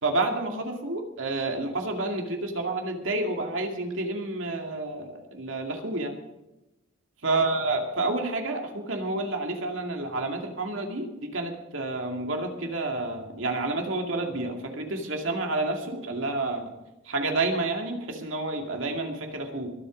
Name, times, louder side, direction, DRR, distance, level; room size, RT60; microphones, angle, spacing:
voice 1, 0.0-6.2 7.2-16.7 17.0-19.7, right 2 dB, 70° right, 3 dB, 2.3 m, -29 dB
22.5 x 8.4 x 5.2 m, 0.99 s
head